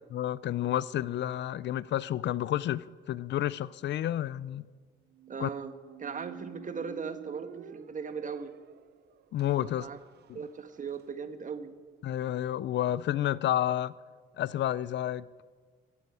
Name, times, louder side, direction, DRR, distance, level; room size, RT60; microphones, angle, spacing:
voice 1, 0.1-4.7 5.4-5.5 9.3-9.9 10.3-10.4 12.0-13.9 14.4-15.3, left 12 dB, 65° left, 0.5 m, -30 dB
Squeak, 5.1-11.0, right 12 dB, 55° right, 0.5 m, -50 dB
voice 2, 5.3-5.7 6.0-8.5 9.6-10.0 10.3-11.7, right 5 dB, 40° right, 1.4 m, -38 dB
16.5 x 8.3 x 9.3 m
cardioid pair, 90°, 20 cm